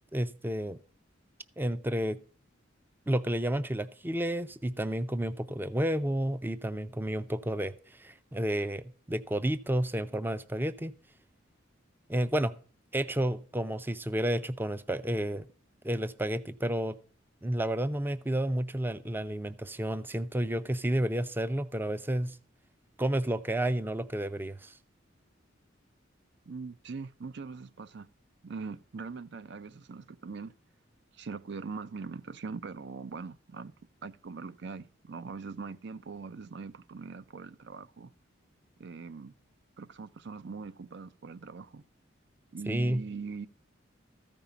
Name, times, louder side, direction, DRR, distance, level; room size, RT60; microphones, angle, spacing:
voice 1, 0.1-0.8 1.6-2.2 3.1-7.7 8.0-10.9 12.1-12.5 12.9-15.5 15.8-17.0 17.4-22.4 23.0-24.7 42.7-43.0, right 1 dB, 10° right, 0.5 m, -31 dB
voice 2, 26.4-28.1 28.4-30.5 31.1-33.7 34.0-38.1 38.8-39.3 39.8-41.8 42.5-43.5, right 4 dB, 65° right, 0.5 m, -41 dB
14.0 x 5.3 x 7.0 m
head